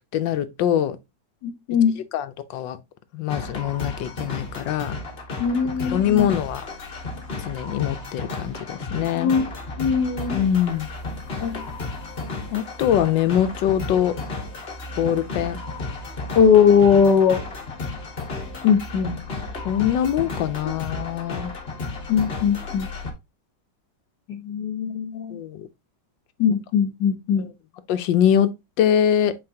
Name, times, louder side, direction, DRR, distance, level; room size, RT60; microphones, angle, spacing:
voice 1, 0.1-1.0 2.1-2.8 3.1-4.9 5.9-6.6 7.4-9.3 10.3-10.9 12.5-14.1 15.0-15.6 19.6-21.5 25.3-25.7 26.5-26.6 27.4-27.5 27.9-28.5 28.8-29.3, left 10 dB, 90° left, 1.4 m, -23 dB
voice 2, 1.4-1.9 5.4-6.3 9.2-9.5 9.8-10.4 11.4-11.6 16.3-17.4 18.6-19.2 22.1-22.9 24.3-25.4 26.4-27.5, left 7 dB, 70° left, 1.5 m, -20 dB
sound 1, 3.3-23.1, left 3 dB, 35° left, 1.4 m, -33 dB
7.7 x 4.7 x 2.8 m
omnidirectional pair, 1.9 m